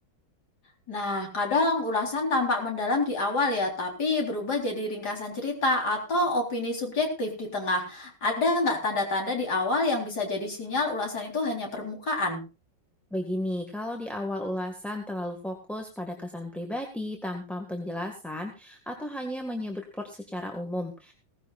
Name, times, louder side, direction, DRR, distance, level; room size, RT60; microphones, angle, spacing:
voice 1, 0.9-12.4, left 2 dB, 50° left, 2 dB, 4.3 m, -27 dB
voice 2, 13.1-21.1, left 1 dB, ahead, 2 dB, 1.4 m, -34 dB
17.5 x 15.5 x 2.4 m, 0.30 s
omnidirectional pair, 2.2 m